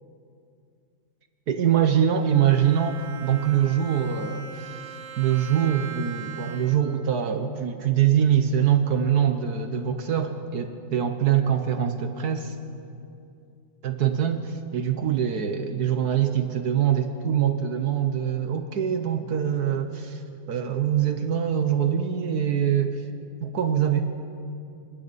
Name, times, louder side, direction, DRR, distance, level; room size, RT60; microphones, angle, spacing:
voice 1, 1.5-12.5 13.8-20.2 20.5-23.0 23.4-24.0, right 9 dB, 60° right, 7 dB, 1.4 m, -24 dB
Bowed string instrument, 2.0-7.1, right 7 dB, 85° right, 2.5 m, -41 dB
27.0 x 25.0 x 4.1 m, 2.6 s
omnidirectional pair, 2.0 m